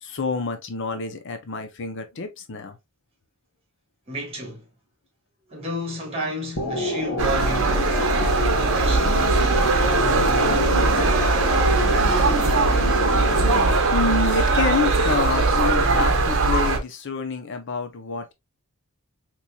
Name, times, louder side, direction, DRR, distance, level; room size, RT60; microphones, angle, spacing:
voice 1, 0.0-2.8 13.9-18.3, left 4 dB, 55° left, 0.6 m, -27 dB
voice 2, 4.1-4.7 5.5-7.9 8.2-11.2, equal, 25° right, 1.7 m, -32 dB
sound 1, 6.6-13.7, left 1 dB, 90° left, 1.2 m, -27 dB
sound 2, 7.2-16.8, right 3 dB, 60° right, 0.8 m, -20 dB
4.1 x 3.1 x 2.3 m
head